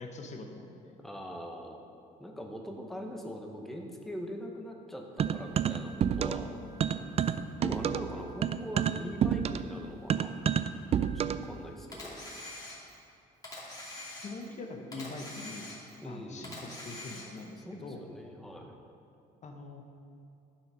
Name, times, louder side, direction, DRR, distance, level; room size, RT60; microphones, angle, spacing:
voice 1, 0.0-1.0 14.2-15.7 16.0-18.1 19.4-19.8, left 3 dB, 45° left, 3 dB, 1.0 m, -43 dB
voice 2, 1.0-1.8 2.2-6.5 7.6-10.4 11.1-12.2 16.0-16.8 17.7-18.8, equal, ahead, 1 dB, 1.0 m, -42 dB
sound 1, 5.2-6.5 6.8-11.5, right 8 dB, 40° right, 0.4 m, -29 dB
Camera, 11.9-13.1 13.4-14.6 14.9-16.1 16.4-17.5, left 2 dB, 20° left, 2.6 m, -44 dB
11.5 x 6.1 x 5.5 m, 2.5 s
cardioid pair, 110°, 17 cm